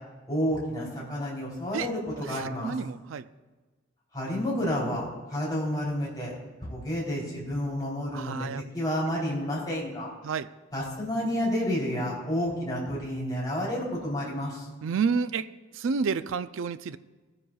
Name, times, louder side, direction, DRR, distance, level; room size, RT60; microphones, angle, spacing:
voice 1, 0.3-2.7 4.1-6.3 6.6-10.1 10.7-14.7, equal, 20° left, -5 dB, 3.2 m, -30 dB
voice 2, 2.2-3.3 8.1-8.7 10.2-10.5 14.8-15.5 15.7-17.0, right 5 dB, 85° right, 14 dB, 0.4 m, -30 dB
18.5 x 9.8 x 2.3 m, 1.2 s
head